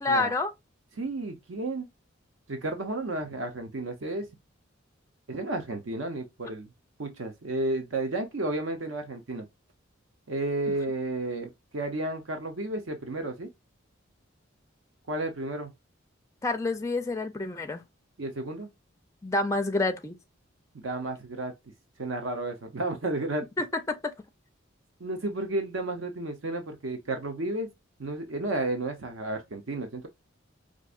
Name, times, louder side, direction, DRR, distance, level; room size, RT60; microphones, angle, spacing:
voice 1, 0.0-0.5 16.4-17.8 19.2-20.2 23.6-24.1, left 2 dB, 15° left, 0.4 m, -28 dB
voice 2, 1.0-1.9 2.5-4.3 5.3-6.7 7.0-9.5 10.3-13.5 15.1-15.7 18.2-18.7 20.7-21.5 22.0-23.5 25.0-27.7 28.0-30.1, right 2 dB, 70° right, 0.7 m, -32 dB
4.6 x 2.6 x 2.4 m
head